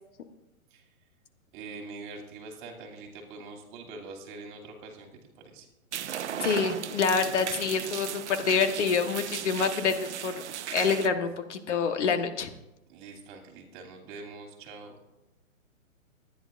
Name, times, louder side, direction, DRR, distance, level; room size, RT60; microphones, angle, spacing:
voice 1, 1.5-5.1 5.4-5.7 12.9-14.9, right 3 dB, 35° right, 2 dB, 2.8 m, -44 dB
sound 1, 5.9-11.1, right 10 dB, 55° right, 0.9 m, -36 dB
voice 2, 6.4-10.3 10.7-12.5, left 5 dB, 55° left, 7 dB, 1.4 m, -27 dB
22.5 x 10.0 x 2.6 m, 0.92 s
hypercardioid pair, 140°, 42 cm